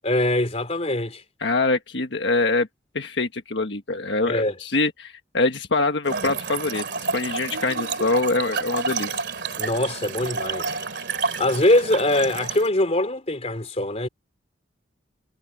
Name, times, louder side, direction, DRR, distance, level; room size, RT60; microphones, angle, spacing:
voice 1, 0.0-1.2 4.2-4.6 9.6-10.7 11.4-14.1, left 1 dB, 35° left, 3.3 m, -22 dB
voice 2, 1.4-2.7 2.9-9.2, left 3 dB, 70° left, 1.5 m, -24 dB
Trickle dribble / Fill (with liquid), 6.0-12.7, right 4 dB, 65° right, 2.7 m, -29 dB
head